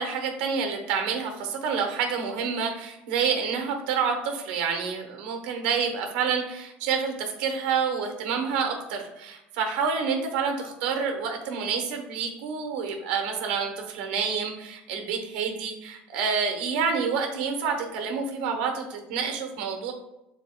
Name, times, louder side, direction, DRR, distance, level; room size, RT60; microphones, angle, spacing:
voice 1, 0.0-19.9, right 6 dB, 90° right, 4 dB, 0.9 m, -28 dB
5.4 x 4.1 x 2.2 m, 0.89 s
cardioid pair, 130°, 5 cm